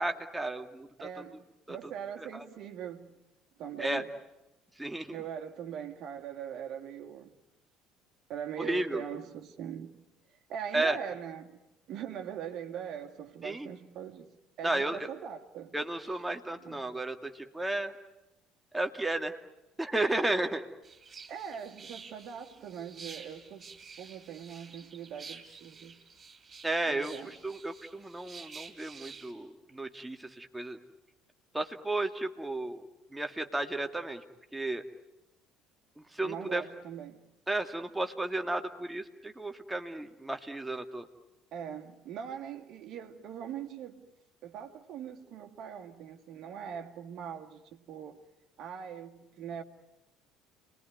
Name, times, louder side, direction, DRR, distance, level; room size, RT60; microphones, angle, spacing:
voice 1, 0.0-1.1 1.7-1.8 2.3-2.4 3.8-4.1 4.8-5.2 8.6-9.0 10.7-11.0 13.4-13.7 14.6-15.1 15.7-17.9 18.7-19.4 19.8-20.6 26.6-30.8 31.5-34.2 34.5-34.8 36.0-36.6 37.5-41.1, right 2 dB, 10° right, 2.3 m, -33 dB
voice 2, 1.0-3.2 3.6-4.1 5.1-7.4 8.3-10.0 10.5-11.6 11.9-14.3 14.6-15.7 16.0-16.2 16.6-16.9 21.3-23.7 24.0-26.0 26.9-27.3 36.2-37.3 41.5-44.1 44.4-48.2 48.6-49.6, right 8 dB, 55° right, 2.2 m, -41 dB
sound 1, 20.8-29.3, right 5 dB, 30° right, 4.6 m, -50 dB
29.5 x 21.5 x 9.4 m
figure-of-eight pair, 55°, 0 cm